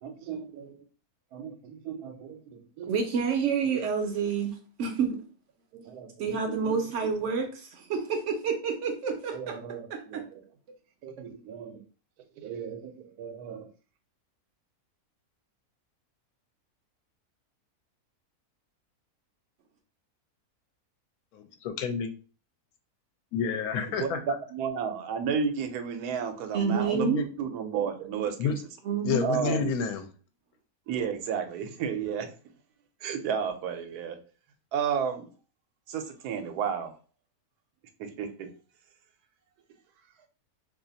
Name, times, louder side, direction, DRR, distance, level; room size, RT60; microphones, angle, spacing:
voice 1, 0.0-0.8 1.3-3.0 5.7-6.8 9.3-10.4 11.0-11.8 12.4-13.7 23.7-28.5 29.2-29.7 30.9-32.3 33.0-34.2 34.7-35.3 35.9-36.9 38.0-38.5, right 7 dB, 85° right, 7 dB, 1.1 m, -33 dB
voice 2, 2.9-5.2 6.2-9.6 9.9-10.3 26.5-27.2 28.1-28.3 28.9-29.4, right 5 dB, 65° right, 4 dB, 0.8 m, -29 dB
voice 3, 21.3-22.1 23.3-24.2 26.9-27.2 28.4-28.6 29.0-30.0, left 6 dB, 75° left, 7 dB, 1.0 m, -29 dB
2.7 x 2.4 x 3.9 m, 0.37 s
omnidirectional pair, 1.6 m